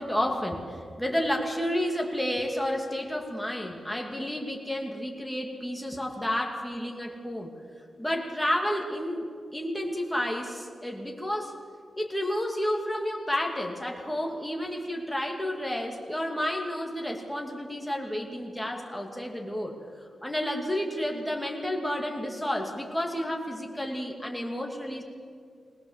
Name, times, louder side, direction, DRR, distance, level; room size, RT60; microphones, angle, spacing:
voice 1, 0.0-7.5 8.0-11.5 12.0-19.7 20.2-25.0, equal, 5° left, 1 dB, 2.5 m, -31 dB
21.5 x 19.0 x 7.5 m, 2.1 s
wide cardioid pair, 140°, 0 cm